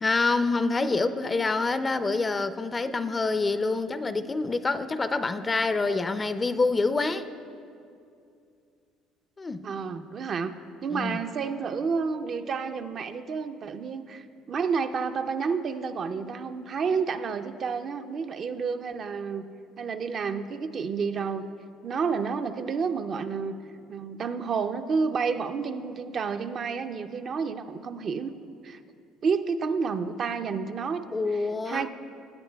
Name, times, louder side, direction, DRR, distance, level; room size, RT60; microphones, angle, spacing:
voice 1, 0.0-7.3 9.4-9.7 10.9-11.2 31.1-31.9, left 3 dB, 25° left, 12 dB, 0.4 m, -26 dB
voice 2, 9.6-10.5 10.8-19.4 19.8-21.5 21.8-23.6 23.9-28.3 28.6-28.8 29.2-31.9, right 5 dB, 50° right, 8 dB, 0.5 m, -30 dB
16.5 x 8.6 x 2.3 m, 2.5 s
supercardioid pair, 80°, 0 cm